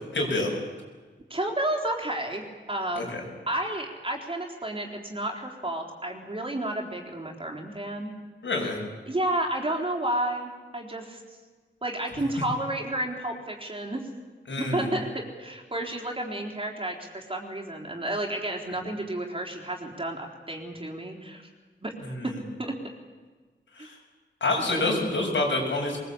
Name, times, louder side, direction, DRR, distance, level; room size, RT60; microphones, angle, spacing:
voice 1, 0.1-0.6 3.0-3.2 8.4-8.8 14.5-14.9 23.8-23.9 24.4-26.0, left 2 dB, 85° left, 0 dB, 7.0 m, -27 dB
voice 2, 1.3-3.1 3.5-8.1 9.1-11.4 11.8-14.0 14.6-15.1 15.4-21.4 21.8-21.9 22.6-22.7, right 1 dB, 30° right, 1 dB, 4.0 m, -31 dB
22.5 x 21.5 x 8.7 m, 1.4 s
wide cardioid pair, 110°, 19 cm